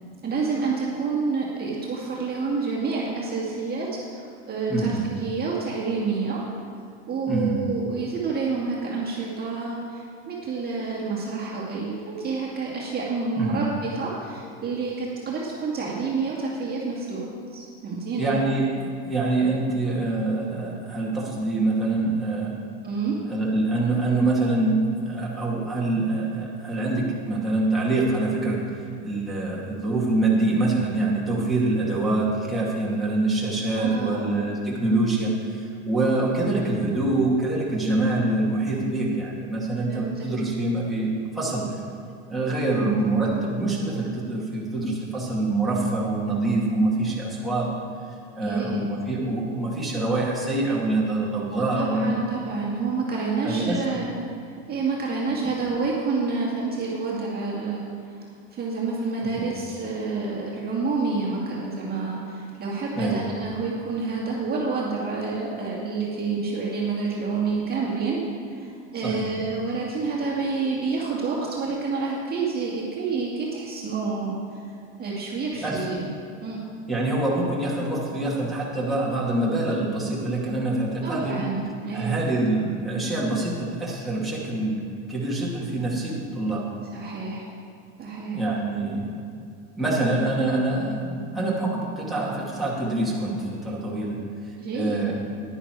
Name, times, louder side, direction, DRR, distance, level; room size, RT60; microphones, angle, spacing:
voice 1, 0.2-6.4 7.1-18.3 22.8-23.2 33.8-34.3 39.9-40.3 42.8-42.9 48.4-48.9 51.5-54.2 54.4-58.2 58.5-68.2 68.5-74.6 75.0-76.0 76.4-76.6 81.0-82.2 86.9-87.5 88.0-88.4 94.6-95.0, right 4 dB, 25° right, -4 dB, 2.1 m, -28 dB
voice 2, 4.7-5.0 7.3-7.6 13.4-13.6 18.2-22.6 23.3-28.6 29.0-41.7 42.3-47.7 48.3-52.2 53.4-53.8 59.2-59.5 62.9-63.3 69.0-69.3 75.6-75.9 76.9-81.4 81.9-86.7 88.3-89.2 89.8-94.2 94.7-95.2, right 2 dB, ahead, -6 dB, 2.3 m, -25 dB
10.5 x 9.8 x 4.7 m, 2.5 s
supercardioid pair, 115°, 35 cm